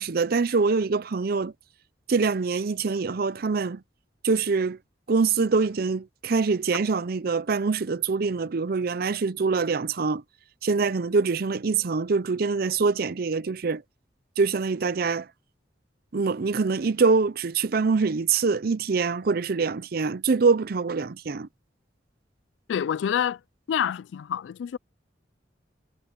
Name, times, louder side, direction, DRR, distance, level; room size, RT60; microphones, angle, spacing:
voice 1, 0.0-1.5 2.1-3.8 4.2-4.8 5.1-10.2 10.6-13.8 14.4-15.3 16.1-21.5, right 4 dB, 55° right, 0.5 m, -24 dB
voice 2, 22.7-23.4 23.7-24.8, left 8 dB, 75° left, 0.3 m, -27 dB
head